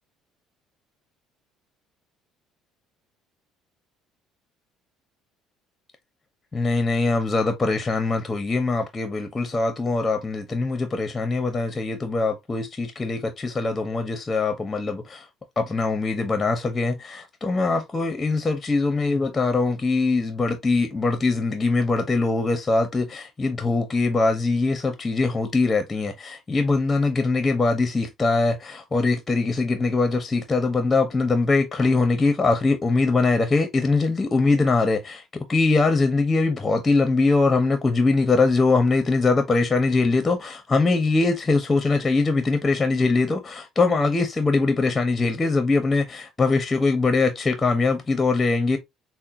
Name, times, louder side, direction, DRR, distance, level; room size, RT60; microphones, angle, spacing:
voice 1, 6.5-15.3 15.6-48.8, left 3 dB, 25° left, 0.7 m, -22 dB
5.5 x 2.1 x 2.5 m
supercardioid pair, 75°, 0 cm